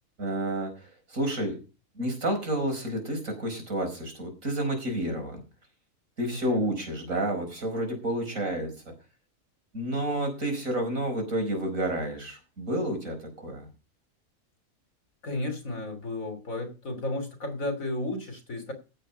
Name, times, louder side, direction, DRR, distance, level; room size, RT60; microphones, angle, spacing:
voice 1, 0.2-1.6 2.0-5.4 6.2-8.9 9.7-13.7, right 1 dB, 70° right, 5.2 m, -30 dB
voice 2, 6.3-6.7 15.2-18.7, left 2 dB, 75° left, 3.2 m, -33 dB
16.0 x 7.7 x 5.5 m
omnidirectional pair, 1.5 m